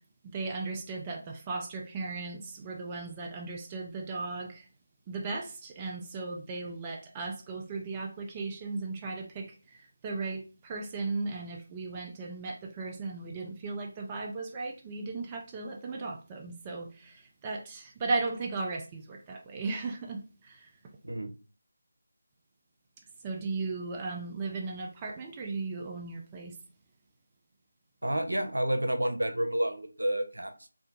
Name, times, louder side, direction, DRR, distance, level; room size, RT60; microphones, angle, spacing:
voice 1, 0.3-4.6 5.1-9.8 10.0-20.2 20.5-20.6 23.2-26.6, right 3 dB, 15° right, 0.4 m, -36 dB
voice 2, 28.0-30.7, right 1 dB, 75° right, 0.7 m, -30 dB
2.6 x 2.2 x 3.9 m
figure-of-eight pair, 160°, 0 cm